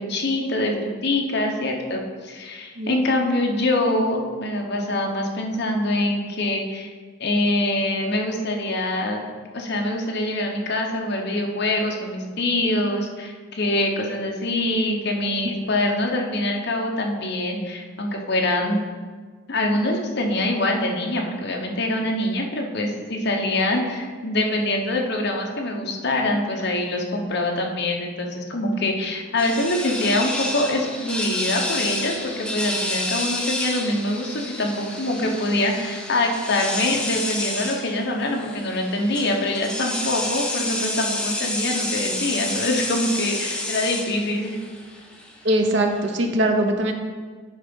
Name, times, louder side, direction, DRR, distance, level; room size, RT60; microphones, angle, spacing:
voice 1, 0.0-6.9 7.2-9.2 9.5-18.8 19.5-44.6, left 1 dB, 50° left, 1 dB, 1.1 m, -24 dB
sound 1, 29.4-46.3, left 1 dB, 5° left, 0.7 m, -29 dB
voice 2, 45.4-46.9, right 1 dB, 55° right, 4 dB, 0.8 m, -21 dB
9.4 x 3.9 x 5.4 m, 1.5 s
head